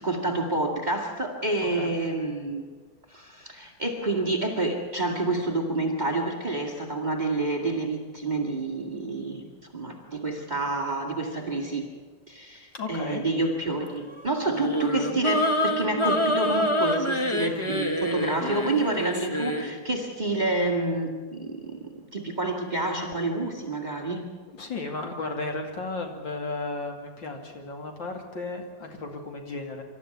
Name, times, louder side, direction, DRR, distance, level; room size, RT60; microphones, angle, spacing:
voice 1, 0.0-2.6 3.1-9.5 9.7-11.9 12.3-24.3, right 2 dB, 20° right, 3 dB, 2.2 m, -28 dB
voice 2, 12.7-13.2 17.4-17.7 24.6-29.8, left 3 dB, 60° left, 3 dB, 3.1 m, -34 dB
sound 1, 14.5-19.7, equal, 20° left, 0.9 m, -26 dB
25.5 x 13.5 x 9.6 m, 1.5 s
omnidirectional pair, 2.4 m